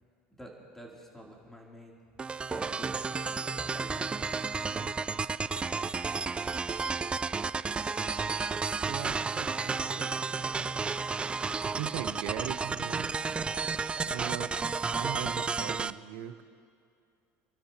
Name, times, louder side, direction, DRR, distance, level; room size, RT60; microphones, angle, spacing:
voice 1, 0.4-2.0 2.2-4.2 4.6-4.9, equal, 5° left, -3 dB, 3.2 m, -48 dB
sound 1, 2.2-15.9, right 4 dB, 20° right, 0.3 m, -32 dB
voice 2, 8.8-10.2 11.6-13.1 14.1-14.5 14.9-16.4, right 12 dB, 75° right, 9 dB, 1.1 m, -39 dB
28.5 x 12.5 x 3.0 m, 2.4 s
supercardioid pair, 105°, 6 cm